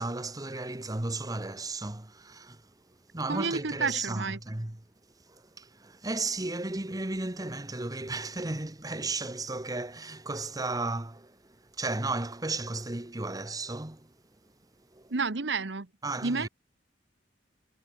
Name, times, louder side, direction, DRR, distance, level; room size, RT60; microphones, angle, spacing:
voice 1, 0.0-2.6 3.1-4.8 5.3-14.1 14.9-15.1 16.0-16.5, right 2 dB, 20° right, 1.2 m, -34 dB
voice 2, 3.3-4.4 15.1-15.9 16.2-16.5, right 4 dB, 90° right, 1.2 m, -30 dB
head